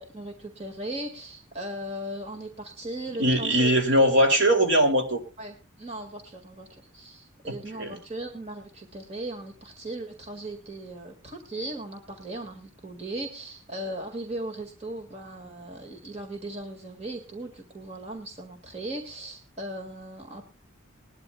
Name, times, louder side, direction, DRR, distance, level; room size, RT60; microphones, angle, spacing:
voice 1, 0.0-3.7 4.0-4.2 5.4-20.4, right 1 dB, 30° right, 2 dB, 2.0 m, -38 dB
voice 2, 3.2-5.2 7.5-8.0, equal, 60° right, 4 dB, 2.7 m, -21 dB
21.0 x 12.0 x 2.3 m, 0.30 s
head